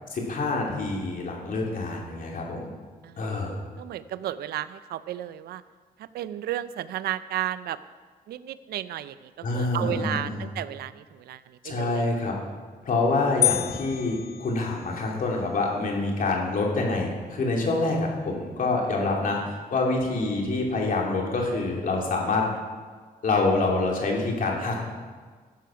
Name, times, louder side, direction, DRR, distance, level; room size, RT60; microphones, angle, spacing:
voice 1, 0.1-2.7 3.2-3.6 9.4-10.4 11.6-12.3 12.8-22.4 23.2-24.9, left 3 dB, 60° left, -1 dB, 2.8 m, -26 dB
voice 2, 3.8-5.6 6.1-7.8 8.3-12.1, right 12 dB, 85° right, 15 dB, 0.5 m, -33 dB
sound 1, 13.4-15.2, left 16 dB, 80° left, 0.4 m, -28 dB
13.0 x 7.9 x 5.8 m, 1.5 s
cardioid pair, 70°, 16 cm